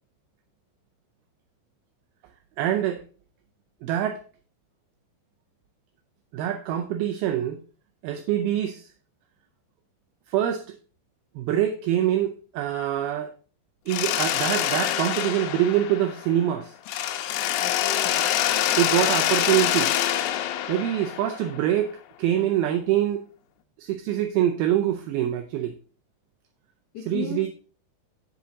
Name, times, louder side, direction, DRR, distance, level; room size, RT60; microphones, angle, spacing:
voice 1, 2.6-3.0 3.8-4.2 6.3-7.6 8.0-8.9 10.3-10.8 11.4-13.3 13.9-16.7 18.8-20.0 20.7-23.2 23.8-25.7 27.1-27.5, right 11 dB, 80° right, 2.2 m, -25 dB
Mechanisms, 13.9-16.5 16.9-21.7, left 11 dB, 90° left, 2.9 m, -25 dB
voice 2, 17.6-18.3 26.9-27.5, left 6 dB, 70° left, 1.9 m, -36 dB
7.6 x 6.8 x 3.9 m
omnidirectional pair, 5.0 m